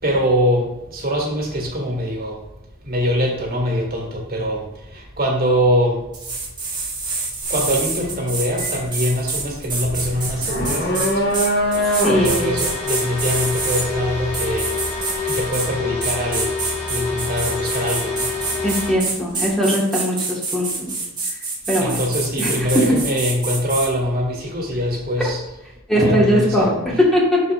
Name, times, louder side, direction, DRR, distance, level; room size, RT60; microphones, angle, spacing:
voice 1, 0.0-2.4 2.8-6.1 7.5-11.4 12.1-16.5 16.9-18.3 21.8-25.4 25.9-27.0, equal, 50° right, 0 dB, 1.9 m, -23 dB
sound 1, 6.1-13.9 14.3-15.7 16.0-23.9, right 3 dB, 25° right, 1.6 m, -26 dB
sound 2, 7.4-7.7 8.1-15.1, equal, 55° left, 1.5 m, -24 dB
voice 2, 11.8-12.5 18.6-20.9 21.7-22.0 22.4-22.7 25.9-27.4, equal, ahead, -5 dB, 1.4 m, -20 dB
sound 3, 12.1-18.9, left 4 dB, 35° left, 1.7 m, -27 dB
11.5 x 4.9 x 2.4 m, 0.98 s
head